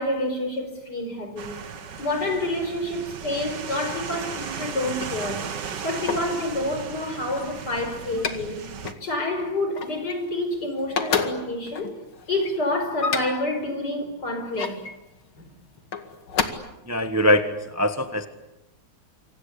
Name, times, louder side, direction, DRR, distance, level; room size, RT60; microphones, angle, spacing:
voice 1, 0.0-1.6 2.0-5.5 5.8-8.6 9.0-12.0 12.3-14.9 15.4-15.5 16.3-16.4, left 1 dB, 50° left, 5.7 m, -28 dB
sound 1, 1.4-8.9, right 7 dB, 60° right, 2.0 m, -36 dB
sound 2, 4.8-6.4 7.0-8.5 8.8-9.1 9.4-10.5 10.8-13.6 14.2-15.0 15.8-16.4, left 6 dB, 85° left, 3.0 m, -31 dB
voice 2, 16.8-18.3, equal, 10° right, 1.2 m, -22 dB
27.5 x 25.5 x 8.5 m
omnidirectional pair, 2.2 m